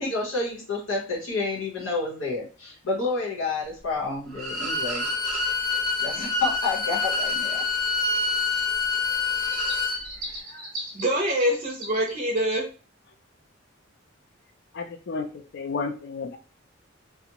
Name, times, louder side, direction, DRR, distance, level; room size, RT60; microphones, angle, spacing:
voice 1, 0.0-5.1 6.0-7.6, left 3 dB, 85° left, -4 dB, 1.0 m, -29 dB
Bowed string instrument, 4.3-10.0, left 3 dB, ahead, 0.7 m, -26 dB
voice 2, 10.0-12.7, equal, 40° right, -1 dB, 0.4 m, -27 dB
voice 3, 14.7-16.4, left 4 dB, 60° left, 6 dB, 0.4 m, -32 dB
2.4 x 2.0 x 2.8 m, 0.35 s
head